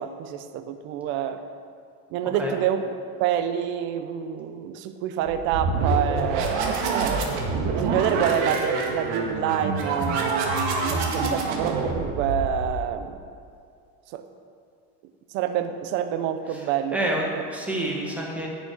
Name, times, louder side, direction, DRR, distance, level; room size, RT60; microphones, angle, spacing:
voice 1, 0.0-1.4 2.1-2.8 3.2-7.3 7.7-13.2 14.1-14.2 15.3-17.0, right 9 dB, 35° right, 9 dB, 0.5 m, -27 dB
sound 1, 5.3-12.9, right 3 dB, 55° right, 1.8 m, -26 dB
voice 2, 16.5-18.5, right 1 dB, 5° right, -2 dB, 1.4 m, -29 dB
11.0 x 6.1 x 8.9 m, 2.3 s
cardioid pair, 180°, 33 cm